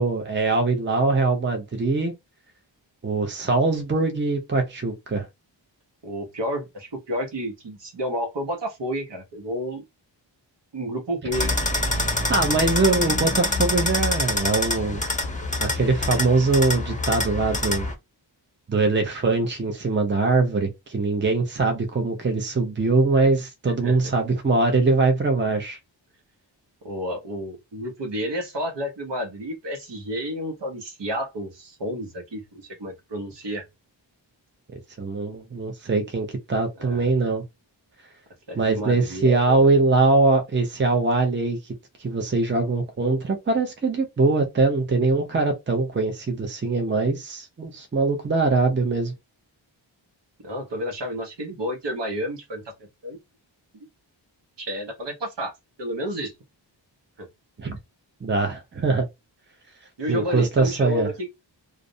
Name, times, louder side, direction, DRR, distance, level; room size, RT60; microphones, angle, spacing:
voice 1, 0.0-2.1 3.0-5.3 12.3-15.0 15.6-17.9 18.7-25.8 35.0-37.4 38.5-41.6 42.0-49.1 57.6-57.8 58.2-59.1 60.1-61.1, right 3 dB, 25° right, 0.6 m, -22 dB
voice 2, 6.0-9.8 10.7-11.5 23.8-23.9 26.8-33.6 36.8-37.1 38.5-39.6 50.4-52.6 53.0-53.2 54.6-55.5 55.8-56.3 57.2-57.3 60.0-61.3, equal, 65° right, 0.9 m, -30 dB
sound 1, 11.3-17.9, left 2 dB, 15° left, 0.5 m, -26 dB
2.4 x 2.0 x 2.6 m
wide cardioid pair, 60°, 46 cm